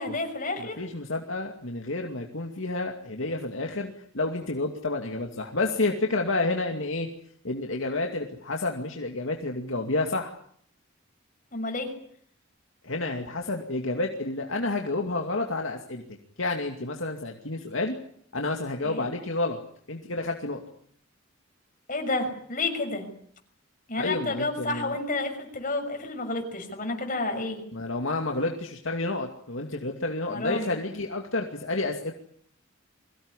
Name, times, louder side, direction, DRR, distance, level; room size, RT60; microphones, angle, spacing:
voice 1, 0.0-0.8 11.5-11.9 18.8-19.1 21.9-23.1 23.9-27.6 30.3-30.7, left 2 dB, 40° left, 4 dB, 6.4 m, -30 dB
voice 2, 0.6-7.1 7.4-10.3 12.8-16.0 16.4-17.9 18.3-19.6 19.9-20.6 24.0-25.0 27.7-32.1, left 2 dB, 70° left, 2 dB, 2.5 m, -30 dB
23.5 x 17.5 x 9.9 m, 0.63 s
head